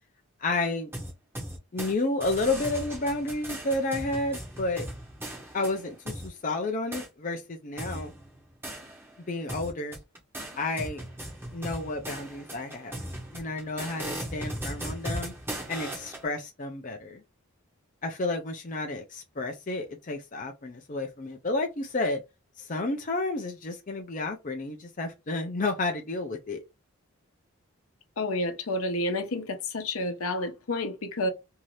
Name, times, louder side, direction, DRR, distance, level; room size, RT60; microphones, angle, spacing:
voice 1, 0.4-0.9 1.7-4.9 5.5-8.1 9.3-10.0 10.6-11.0 11.5-13.0 13.3-15.3 15.7-17.2 18.0-22.2 22.6-26.6, left 2 dB, 35° left, 0.5 m, -31 dB
sound 1, 0.9-1.9 2.2-6.3 6.9-7.1 7.8-9.2 9.5-16.2, right 1 dB, 10° right, 0.7 m, -38 dB
voice 2, 28.2-31.3, left 1 dB, 75° left, 0.7 m, -30 dB
2.7 x 2.5 x 3.1 m
head